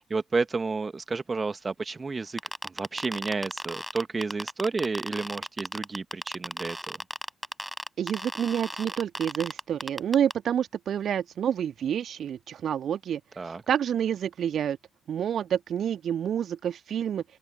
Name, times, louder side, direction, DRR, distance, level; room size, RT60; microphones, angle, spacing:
voice 1, 0.0-7.0 13.4-13.6, right 4 dB, 30° right, 1.9 m, -31 dB
sound 1, 2.4-10.3, equal, ahead, 6.5 m, -35 dB
voice 2, 8.0-13.2 13.7-14.8 15.1-17.2, right 9 dB, 50° right, 1.8 m, -28 dB
open air
figure-of-eight pair, 40°, 0 cm